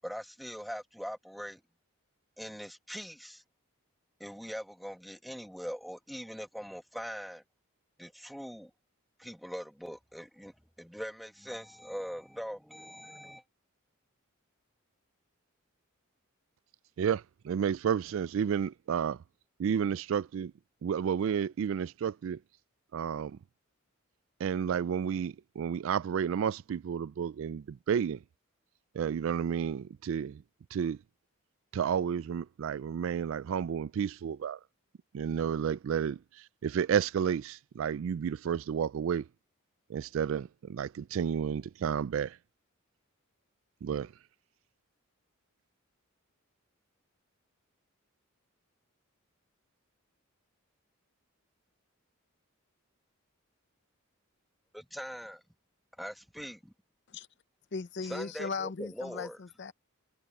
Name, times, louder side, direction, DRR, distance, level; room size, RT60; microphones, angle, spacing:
voice 1, 0.0-1.6 2.4-3.4 4.2-7.4 8.0-8.7 9.2-13.4 54.7-55.4 56.0-56.7 58.0-59.4, equal, ahead, 1.4 m, -42 dB
voice 2, 17.0-19.2 19.6-20.5 20.8-22.4 22.9-23.4 24.4-28.2 28.9-30.4 30.7-31.0 31.7-34.6 35.1-39.3 39.9-42.4 43.8-44.1, right 7 dB, 60° right, 0.3 m, -31 dB
voice 3, 57.7-59.7, left 4 dB, 50° left, 0.6 m, -37 dB
head